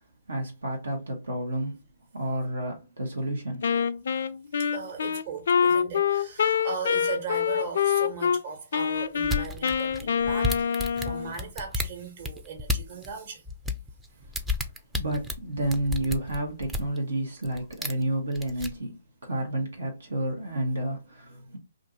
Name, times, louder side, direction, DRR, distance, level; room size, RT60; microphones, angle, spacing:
voice 1, 0.3-1.8 2.1-3.7 14.9-19.0 19.2-21.6, right 1 dB, 85° right, 1.0 m, -30 dB
Wind instrument woodwind instrument, 3.6-8.4 8.7-11.3, left 7 dB, 65° left, 0.3 m, -25 dB
voice 2, 4.7-13.4, right 6 dB, 50° right, 1.3 m, -38 dB
sound 1, 9.2-13.1 13.5-17.0 17.4-18.0 18.4-18.7, left 2 dB, 5° right, 0.4 m, -31 dB
2.6 x 2.5 x 4.0 m
hypercardioid pair, 135°, 0 cm